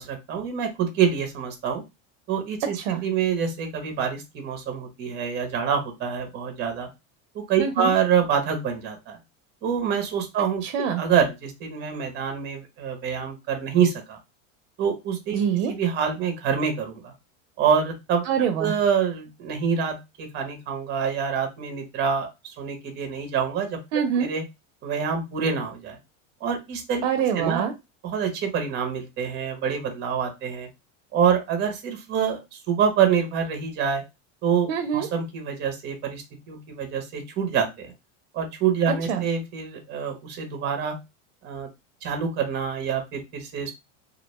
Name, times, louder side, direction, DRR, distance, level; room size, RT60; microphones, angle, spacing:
voice 1, 0.0-1.8 2.3-2.8 3.0-6.9 7.3-9.2 9.6-10.6 11.0-14.2 14.8-15.4 15.7-17.1 17.6-18.2 18.6-23.8 24.2-24.4 24.8-26.0 26.4-27.1 27.3-27.6 28.0-30.7 31.1-34.0 34.4-37.9 38.3-41.0 41.4-41.7 42.0-43.7, right 7 dB, 30° right, 5 dB, 0.7 m, -26 dB
voice 2, 7.6-7.9 10.6-11.0 15.3-15.7 18.2-18.7 23.9-24.3 27.0-27.7 34.7-35.1 39.1-39.2, right 8 dB, 75° right, 6 dB, 0.6 m, -25 dB
2.4 x 2.1 x 2.9 m, 0.24 s
supercardioid pair, 140°, 38 cm